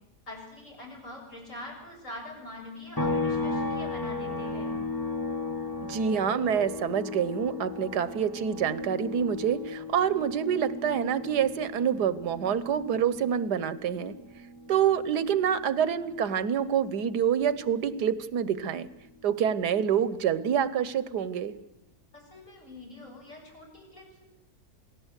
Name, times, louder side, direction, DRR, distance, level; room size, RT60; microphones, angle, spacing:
voice 1, 0.2-4.7 22.1-24.3, left 1 dB, 50° left, 0 dB, 8.0 m, -44 dB
sound 1, 3.0-16.5 16.8-19.0, left 3 dB, 15° left, 2.0 m, -36 dB
voice 2, 5.8-14.1 14.7-18.9 19.2-21.6, right 8 dB, 85° right, 16 dB, 1.6 m, -27 dB
27.5 x 18.0 x 8.3 m, 0.87 s
omnidirectional pair, 1.7 m